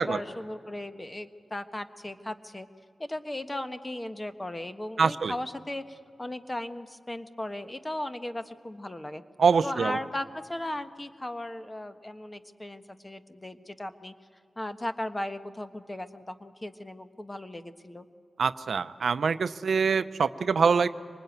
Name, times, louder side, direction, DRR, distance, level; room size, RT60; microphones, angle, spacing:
voice 1, 0.0-2.7 3.0-9.2 9.6-14.1 14.6-18.1, left 1 dB, 25° left, 9 dB, 1.4 m, -37 dB
voice 2, 5.0-5.3 9.4-10.0 18.4-20.9, right 5 dB, 75° right, 13 dB, 0.6 m, -24 dB
24.0 x 20.0 x 9.3 m, 2.2 s
cardioid pair, 45°, 0 cm